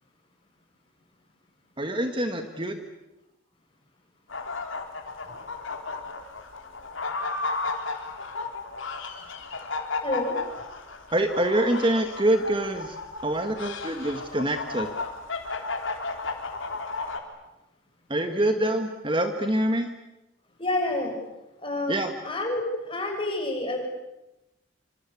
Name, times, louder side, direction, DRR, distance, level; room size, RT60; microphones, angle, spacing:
voice 1, 1.8-2.8 11.1-13.0 13.2-14.9 18.1-19.9 21.9-22.1, right 1 dB, 25° right, 7 dB, 1.5 m, -25 dB
Geese Horde Honk, 4.3-17.2, left 3 dB, 70° left, 3.9 m, -34 dB
voice 2, 10.0-10.3 20.6-21.1 21.6-22.0 22.2-23.8, left 2 dB, 25° left, 2 dB, 6.6 m, -28 dB
26.5 x 26.5 x 8.5 m, 0.96 s
head